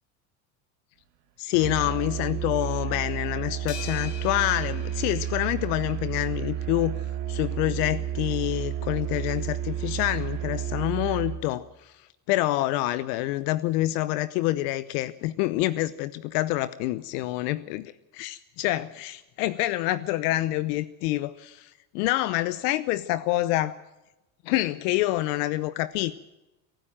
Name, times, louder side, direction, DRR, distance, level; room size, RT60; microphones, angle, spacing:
voice 1, 1.4-7.0 7.3-11.9 12.3-23.7 24.4-26.1, left 16 dB, 70° left, 15 dB, 1.0 m, -27 dB
Musical instrument, 1.5-11.5, right 11 dB, 80° right, 2.9 m, -31 dB
sound 1, 3.7-6.2, left 9 dB, 90° left, 4.0 m, -44 dB
24.0 x 13.0 x 8.9 m, 1.0 s
supercardioid pair, 95°, 48 cm